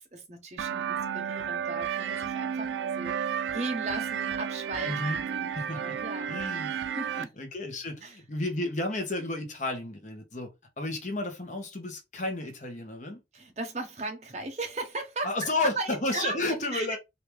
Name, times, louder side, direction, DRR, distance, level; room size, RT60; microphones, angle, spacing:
voice 1, 0.0-4.9 5.2-6.3 6.7-7.3 8.0-8.2 13.3-16.9, right 2 dB, 40° right, 0.9 m, -37 dB
sound 1, 0.6-7.2, right 8 dB, 85° right, 0.3 m, -32 dB
voice 2, 4.8-5.2 5.5-6.0 6.3-6.7 7.1-10.5 10.8-13.2 15.2-17.0, left 2 dB, 40° left, 1.0 m, -32 dB
3.4 x 2.7 x 3.0 m
head